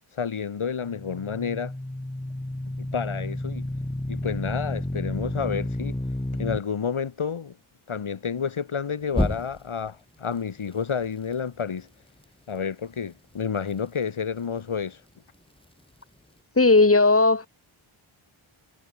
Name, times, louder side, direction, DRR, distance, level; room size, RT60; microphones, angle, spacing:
voice 1, 0.1-1.7 2.8-3.7 4.1-5.9 6.4-7.6 7.9-11.9 12.5-15.0, left 6 dB, 75° left, 7.7 m, -30 dB
sound 1, 0.8-6.6 9.1-9.9, left 1 dB, 10° left, 7.2 m, -30 dB
voice 2, 16.6-17.5, left 3 dB, 25° left, 4.7 m, -17 dB
wide cardioid pair, 140°, 50 cm